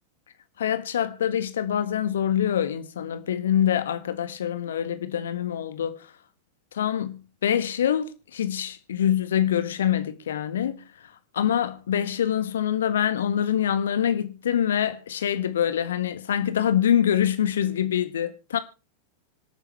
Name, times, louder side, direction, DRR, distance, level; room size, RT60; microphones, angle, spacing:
voice 1, 0.6-6.0 6.7-10.8 11.3-18.6, left 9 dB, 65° left, 1.4 m, -25 dB
26.0 x 9.0 x 3.3 m
figure-of-eight pair, 90°, 0 cm